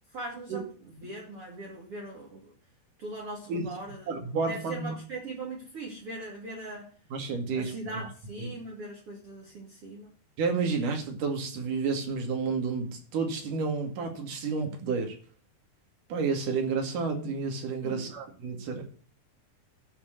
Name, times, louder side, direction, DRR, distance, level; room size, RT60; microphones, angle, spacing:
voice 1, 0.1-0.7 1.0-2.5 3.0-4.2 4.5-6.9 7.5-10.1 17.8-18.1, right 2 dB, 40° right, -2 dB, 2.9 m, -40 dB
voice 2, 4.1-5.0 7.1-8.1 8.4-8.5 10.4-15.2 16.1-18.8, right 4 dB, 65° right, 4 dB, 3.7 m, -30 dB
11.5 x 6.2 x 7.9 m, 0.41 s
omnidirectional pair, 4.2 m